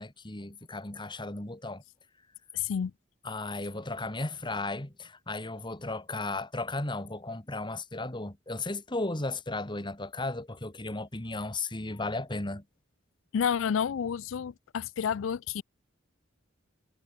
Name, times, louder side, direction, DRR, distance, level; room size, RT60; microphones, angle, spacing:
voice 1, 0.0-1.8 3.2-12.6, left 2 dB, 25° left, 2.2 m, -35 dB
voice 2, 2.5-2.9 13.3-15.6, left 7 dB, 75° left, 0.4 m, -30 dB
head